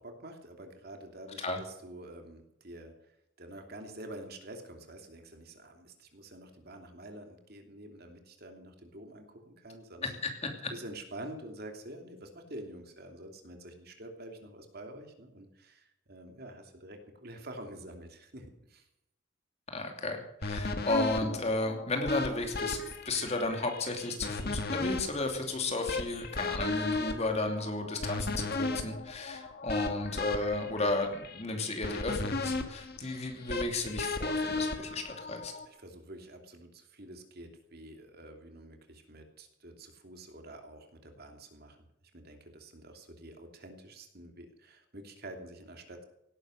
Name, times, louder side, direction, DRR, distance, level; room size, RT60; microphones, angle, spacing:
voice 1, 0.0-2.9 3.4-10.2 10.7-18.9 35.6-41.8 42.1-46.0, right 1 dB, 50° right, 4 dB, 2.9 m, -47 dB
voice 2, 19.7-35.5, left 2 dB, 35° left, 4 dB, 2.8 m, -33 dB
sound 1, 20.4-35.7, left 3 dB, 50° left, 1.7 m, -35 dB
17.5 x 11.5 x 6.6 m, 0.82 s
head